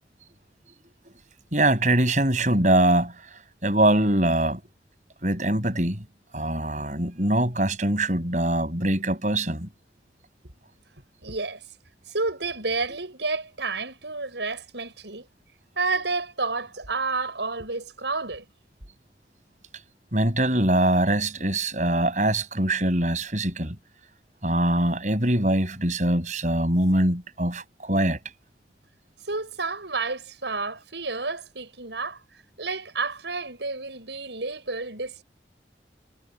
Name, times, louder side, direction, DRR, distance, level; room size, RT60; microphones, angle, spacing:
voice 1, 1.5-4.6 5.2-6.0 6.3-9.7 20.1-23.8 24.4-28.2, right 1 dB, 45° right, 7.6 m, -23 dB
voice 2, 11.2-11.6 12.1-15.3 15.8-18.4 29.3-32.2 32.6-35.2, right 3 dB, 85° right, 8.0 m, -30 dB
head